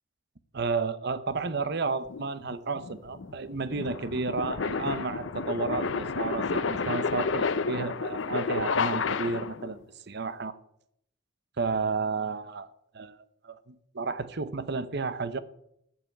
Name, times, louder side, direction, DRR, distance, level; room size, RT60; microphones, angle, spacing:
voice 1, 0.5-10.5 11.6-12.7 12.9-13.2 13.4-15.4, right 4 dB, 60° right, 14 dB, 0.9 m, -32 dB
sound 1, 2.1-9.7, left 4 dB, 85° left, 0.7 m, -31 dB
14.0 x 5.8 x 8.6 m, 0.75 s
head